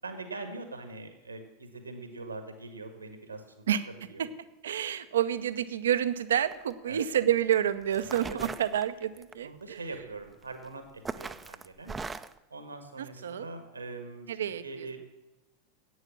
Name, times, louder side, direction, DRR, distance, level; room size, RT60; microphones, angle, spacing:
voice 1, 0.0-4.2 6.9-7.1 8.3-8.5 9.4-12.0 12.5-14.3 14.6-15.1, right 3 dB, 85° right, 7 dB, 1.7 m, -42 dB
voice 2, 4.6-9.8 13.0-13.5 14.3-14.9, right 10 dB, 70° right, 13 dB, 0.7 m, -29 dB
sound 1, 6.5-6.7 7.5-7.6 7.9-9.3 10.4-10.7 11.0-12.4, right 4 dB, 15° right, 0.5 m, -39 dB
11.0 x 8.9 x 7.4 m, 1.0 s
figure-of-eight pair, 85°, 0 cm